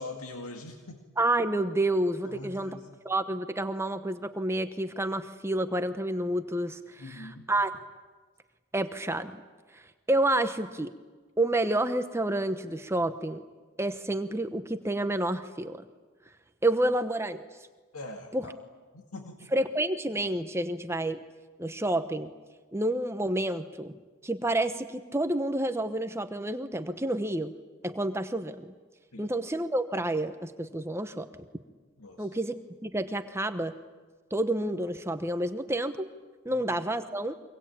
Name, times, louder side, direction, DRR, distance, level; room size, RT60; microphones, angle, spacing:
voice 1, 0.0-1.0 2.2-2.9 7.0-7.5 17.9-18.6 18.9-19.5 29.1-29.3 32.0-32.3 36.5-36.6, left 2 dB, 80° left, 3 dB, 2.2 m, -43 dB
voice 2, 1.2-2.7 3.0-7.7 8.7-9.4 9.7-9.8 10.1-10.9 11.4-13.4 13.8-15.8 16.6-17.4 18.3-18.4 19.5-21.2 21.6-22.3 22.7-23.9 24.2-27.5 27.8-28.7 29.2-31.3 32.2-32.6 32.8-33.7 34.3-36.1 36.4-37.3, right 1 dB, 10° right, 9 dB, 1.0 m, -29 dB
25.5 x 24.5 x 8.8 m, 1.4 s
head